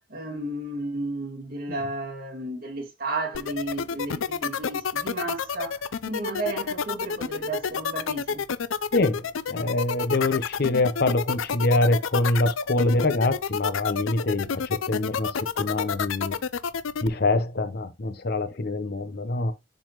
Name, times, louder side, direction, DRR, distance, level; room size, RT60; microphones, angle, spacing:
voice 1, 0.1-8.4, right 2 dB, 45° right, 2.3 m, -33 dB
sound 1, 3.3-17.1, left 6 dB, 75° left, 0.5 m, -29 dB
voice 2, 8.9-16.4 17.0-19.5, left 2 dB, 50° left, 0.8 m, -25 dB
10.5 x 4.1 x 3.1 m
head